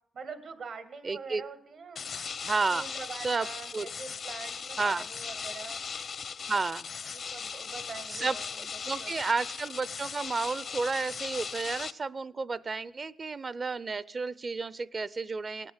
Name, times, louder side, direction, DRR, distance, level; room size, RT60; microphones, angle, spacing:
voice 1, 0.1-2.1 2.7-5.8 7.1-8.5 9.0-9.3, right 5 dB, 75° right, 10 dB, 1.9 m, -44 dB
voice 2, 1.0-1.4 2.4-2.8 3.1-3.5 3.7-3.9 4.8-5.0 6.5-6.9 8.1-15.7, right 4 dB, 45° right, 19 dB, 0.6 m, -32 dB
sound 1, 2.0-11.9, left 6 dB, 65° left, 0.6 m, -38 dB
18.0 x 9.1 x 8.0 m, 0.72 s
cardioid pair, 80°, 0 cm